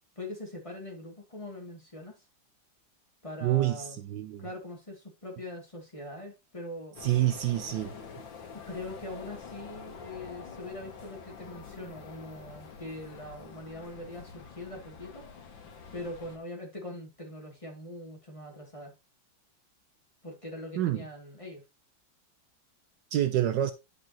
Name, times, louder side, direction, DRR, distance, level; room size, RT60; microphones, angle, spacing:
voice 1, 0.2-2.2 3.2-4.0 4.4-7.0 8.7-15.3 15.9-18.9 20.2-21.6, left 1 dB, 15° left, 2.3 m, -42 dB
voice 2, 3.4-3.8 4.1-4.4 7.0-7.9 20.8-21.0 23.1-23.7, right 13 dB, 75° right, 1.2 m, -26 dB
sound 1, 7.0-16.4, left 5 dB, 80° left, 2.1 m, -46 dB
10.5 x 5.2 x 2.9 m
omnidirectional pair, 2.1 m